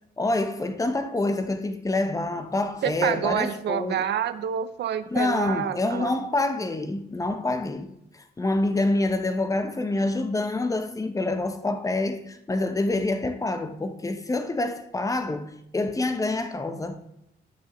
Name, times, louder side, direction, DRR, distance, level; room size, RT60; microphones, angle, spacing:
voice 1, 0.2-4.0 5.1-7.9 8.1-17.0, left 2 dB, 15° left, 0.8 m, -27 dB
voice 2, 2.8-6.1, right 9 dB, 60° right, 0.6 m, -28 dB
9.6 x 6.3 x 3.1 m
cardioid pair, 90°, 20 cm